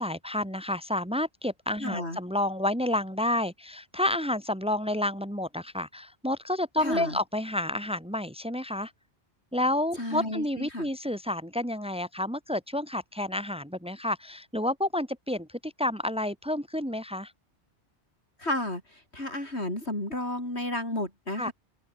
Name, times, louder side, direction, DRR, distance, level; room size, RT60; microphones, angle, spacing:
voice 1, 0.0-8.9 9.5-17.3 21.4-21.5, left 1 dB, 5° right, 2.8 m, -30 dB
voice 2, 1.8-2.2 6.8-7.2 10.0-10.9 18.4-21.5, left 1 dB, 70° left, 8.4 m, -32 dB
open air
omnidirectional pair, 1.2 m